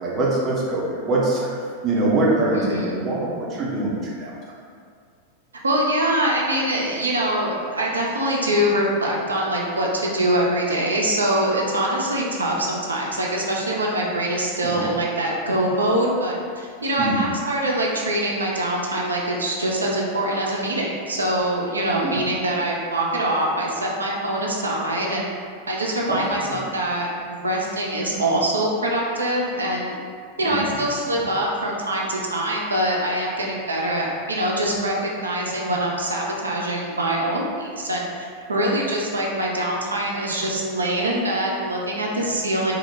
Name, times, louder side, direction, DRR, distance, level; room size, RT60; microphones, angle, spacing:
voice 1, 0.0-4.4 14.6-14.9 17.0-17.3 22.0-22.2 26.1-26.6 30.4-30.8 31.1-31.3, right 2 dB, 25° right, -5 dB, 0.6 m, -24 dB
voice 2, 2.5-3.0 5.6-25.3 25.7-30.0 30.4-42.7, right 1 dB, 75° right, -2 dB, 0.3 m, -24 dB
2.1 x 2.0 x 3.1 m, 2.1 s
figure-of-eight pair, 90°, 0 cm